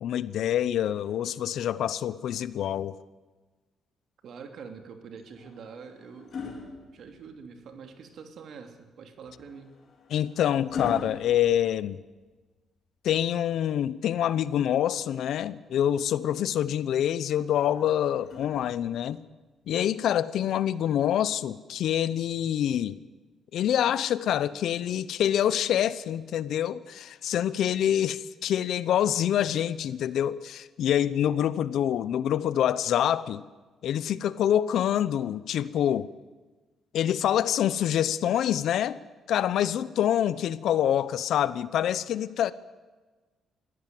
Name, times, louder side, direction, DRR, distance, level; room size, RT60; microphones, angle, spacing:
voice 1, 0.0-3.0 10.1-12.0 13.0-19.2 19.7-22.9 23.5-33.4 33.8-36.1 36.9-39.0 39.3-42.5, left 10 dB, 75° left, 0.8 m, -26 dB
voice 2, 4.2-6.3 6.9-9.8, right 6 dB, 65° right, 2.8 m, -45 dB
sound 1, 5.2-7.6 9.2-12.4 14.2-15.3 17.3-19.2 20.4-20.6, left 5 dB, 55° left, 4.3 m, -42 dB
22.5 x 16.5 x 7.7 m
cardioid pair, 90°, 0 cm